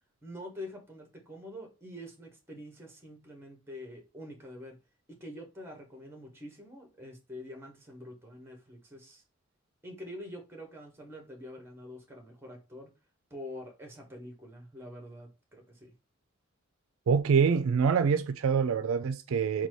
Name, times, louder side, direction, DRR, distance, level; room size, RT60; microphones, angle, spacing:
voice 1, 0.2-4.7 5.1-9.2 9.8-12.9 13.3-15.9, left 1 dB, 10° right, 1.1 m, -46 dB
voice 2, 17.1-19.7, right 6 dB, 75° right, 0.4 m, -25 dB
4.0 x 2.3 x 4.6 m
head